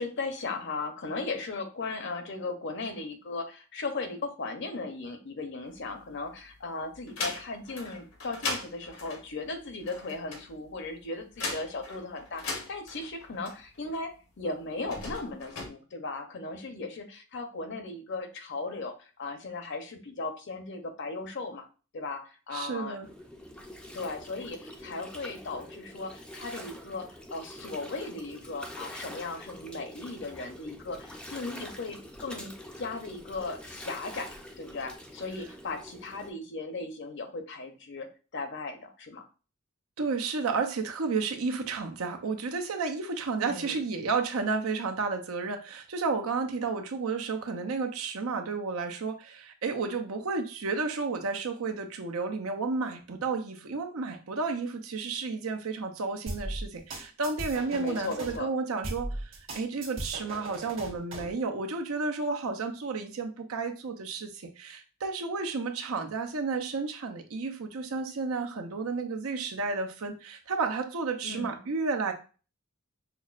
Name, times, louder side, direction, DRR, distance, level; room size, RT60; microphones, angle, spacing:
voice 1, 0.0-21.7 21.9-23.0 23.9-39.2 43.4-43.8 57.7-58.5 71.2-71.6, left 3 dB, 55° left, 6 dB, 0.7 m, -37 dB
sound 1, 5.7-6.5 6.9-14.0 14.7-15.7, left 3 dB, 85° left, 1.0 m, -38 dB
voice 2, 22.5-23.1 40.0-72.1, right 4 dB, 85° right, 5 dB, 0.6 m, -32 dB
Gurgling, 23.0-36.3, equal, 5° left, 0.4 m, -45 dB
sound 2, 56.3-58.4 58.8-61.3, right 1 dB, 60° right, 1.3 m, -38 dB
5.8 x 2.0 x 2.4 m, 0.35 s
head